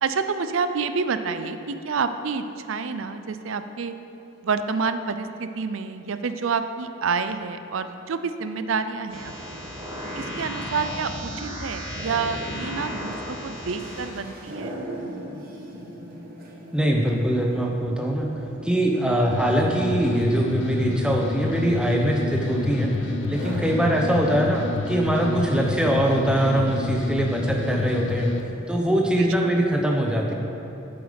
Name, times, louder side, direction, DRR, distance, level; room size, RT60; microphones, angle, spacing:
voice 1, 0.0-3.9 4.4-9.6 10.1-14.8 29.2-29.3, right 5 dB, 75° right, 10 dB, 0.5 m, -28 dB
sound 1, 9.1-14.1, equal, 25° right, 2.3 m, -34 dB
sound 2, 13.5-29.8, right 1 dB, 45° right, 1.4 m, -41 dB
voice 2, 16.7-18.3 18.6-28.3 28.7-30.3, right 1 dB, 5° right, 0 dB, 0.8 m, -22 dB
sound 3, 19.3-28.4, left 3 dB, 60° left, 0.6 m, -29 dB
8.8 x 7.8 x 5.2 m, 2.9 s
head